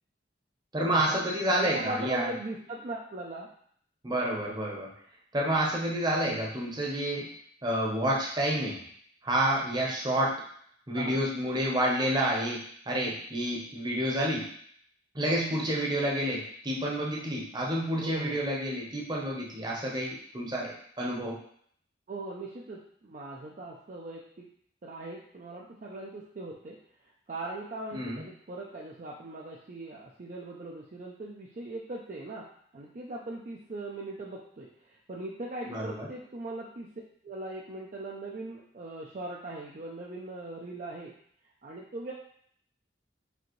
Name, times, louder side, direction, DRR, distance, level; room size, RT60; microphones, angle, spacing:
voice 1, 0.7-2.3 4.0-4.9 5.3-7.3 7.6-8.8 9.2-10.3 10.9-12.6 12.9-14.5 15.1-21.4 27.9-28.2 35.6-36.1, right 1 dB, 25° right, -3 dB, 0.8 m, -29 dB
voice 2, 1.3-3.5 10.9-11.2 18.0-18.5 22.1-24.5 24.8-26.8 27.3-32.5 32.7-36.9 37.2-41.2 41.6-42.1, right 2 dB, 40° right, -3 dB, 0.4 m, -40 dB
5.0 x 2.7 x 3.0 m, 0.63 s
head